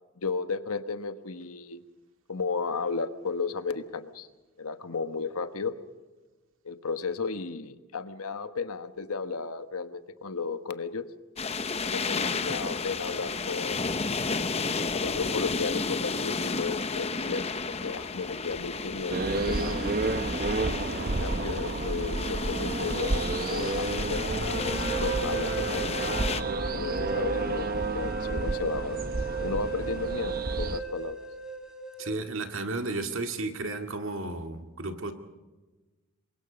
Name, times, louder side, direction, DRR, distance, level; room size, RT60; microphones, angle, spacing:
voice 1, 0.2-1.8 2.3-4.3 4.6-5.7 6.6-11.1 11.8-13.8 14.9-19.8 21.0-26.1 26.7-29.0 29.4-31.2, left 4 dB, 80° left, 10 dB, 1.3 m, -34 dB
sound 1, 11.4-26.4, left 4 dB, 25° left, 0.8 m, -32 dB
sound 2, 19.1-30.8, right 2 dB, 40° right, 0.9 m, -31 dB
sound 3, 24.5-32.1, right 5 dB, 5° right, 2.5 m, -35 dB
voice 2, 32.0-35.1, right 2 dB, 60° right, 6 dB, 2.1 m, -33 dB
28.0 x 23.0 x 5.3 m, 1.2 s
head